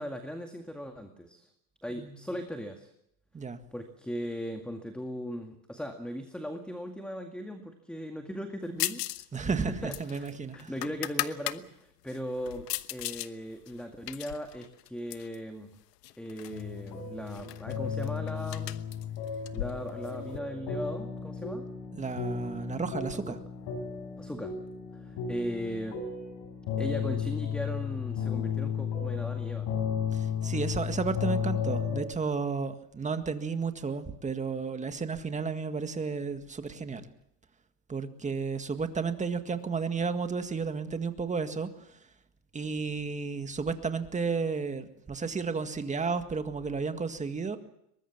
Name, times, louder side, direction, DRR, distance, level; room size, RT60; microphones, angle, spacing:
voice 1, 0.0-1.5 1.8-2.9 3.7-9.0 9.3-15.7 16.2-18.8 19.5-21.7 23.1-23.4 24.2-24.5 24.9-26.0 26.8-29.7, equal, ahead, 5 dB, 2.1 m, -38 dB
sound 1, 8.8-9.3 9.5-11.6 12.1-13.3 13.7-15.4 16.0-16.6 16.9-17.0 17.3-20.4, left 15 dB, 80° left, 1.2 m, -37 dB
voice 2, 9.3-9.7 10.0-10.7 21.9-23.4 30.1-37.1 37.9-41.7 42.5-47.6, right 5 dB, 15° right, 8 dB, 1.9 m, -32 dB
sound 2, 16.5-32.0, left 7 dB, 50° left, 5.4 m, -34 dB
23.0 x 20.5 x 7.4 m, 0.78 s
supercardioid pair, 110°, 47 cm